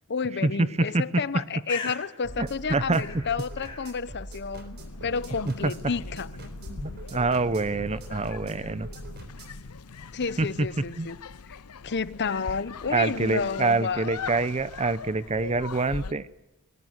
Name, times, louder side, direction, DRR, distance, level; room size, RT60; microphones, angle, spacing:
voice 1, 0.1-6.3 10.1-11.2 11.5-11.6 11.8-14.1, left 5 dB, 50° left, 17 dB, 0.8 m, -31 dB
Bird, 1.2-8.8, left 5 dB, 25° left, 4.6 m, -45 dB
sound 1, 2.2-9.6, right 1 dB, 50° right, 3.9 m, -42 dB
voice 2, 2.4-3.0 5.5-5.7 6.7-8.9 10.4-10.7 11.0-11.1 12.9-16.3, right 3 dB, 30° right, 16 dB, 0.7 m, -26 dB
sound 2, 4.8-16.1, left 5 dB, 85° left, 0.7 m, -41 dB
21.0 x 19.0 x 8.0 m, 0.97 s
head